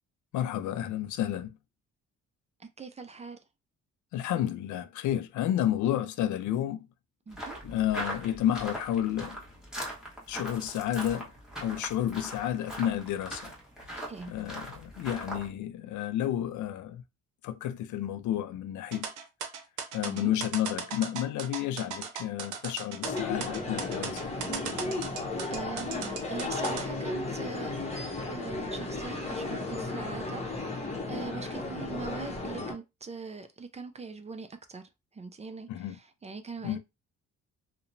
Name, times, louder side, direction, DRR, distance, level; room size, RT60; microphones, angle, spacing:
voice 1, 0.3-1.6 4.1-6.9 7.6-9.4 10.3-11.3 11.6-13.5 14.3-17.0 17.4-19.1 19.9-24.3 35.7-36.0 36.6-36.8, left 11 dB, 75° left, 0.4 m, -31 dB
voice 2, 2.6-3.4 7.3-7.6 14.0-14.3 20.1-20.3 25.5-27.7 28.3-34.8 35.1-36.8, right 4 dB, 25° right, 0.4 m, -42 dB
sound 1, 7.3-15.5, right 1 dB, ahead, 1.2 m, -40 dB
sound 2, 18.9-26.9, right 7 dB, 80° right, 0.7 m, -37 dB
sound 3, 23.0-32.7, left 3 dB, 20° left, 0.9 m, -34 dB
2.8 x 2.1 x 2.6 m
cardioid pair, 90°, 30 cm